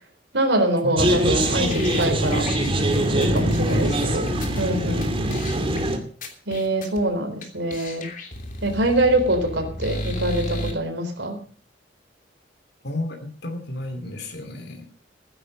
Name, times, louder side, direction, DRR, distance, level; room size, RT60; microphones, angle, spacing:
voice 1, 0.3-2.4 3.1-5.1 6.5-8.1 8.6-11.4, right 1 dB, 70° right, 4 dB, 3.9 m, -24 dB
sound 1, 1.0-6.0, right 1 dB, 30° right, 2.5 m, -23 dB
sound 2, 1.1-4.6 5.0-5.1 5.3-5.8 6.2-7.0 7.4-7.5 7.7-10.7, left 1 dB, 50° left, 3.1 m, -34 dB
voice 2, 3.7-4.2 5.2-5.4 12.8-14.9, left 1 dB, 65° left, 4 dB, 2.8 m, -33 dB
15.5 x 10.5 x 6.4 m, 0.43 s
head